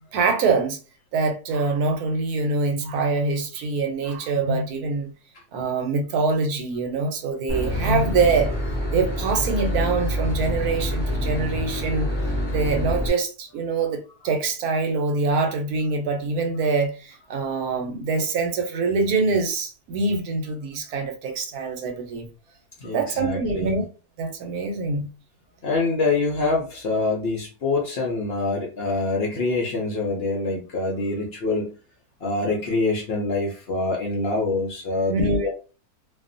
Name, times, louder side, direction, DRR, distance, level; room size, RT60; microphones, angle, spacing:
voice 1, 0.1-0.8 1.1-5.1 5.5-8.5 8.9-12.1 12.5-22.3 22.9-23.8 24.2-25.1 35.1-35.5, right 4 dB, 70° right, 1.1 m, -24 dB
Boat Water vehicle / Engine, 7.5-13.1, equal, 25° left, 0.6 m, -26 dB
voice 2, 22.8-23.8 25.6-31.7 32.2-35.5, left 3 dB, 65° left, 0.6 m, -25 dB
2.5 x 2.3 x 2.5 m
omnidirectional pair, 1.7 m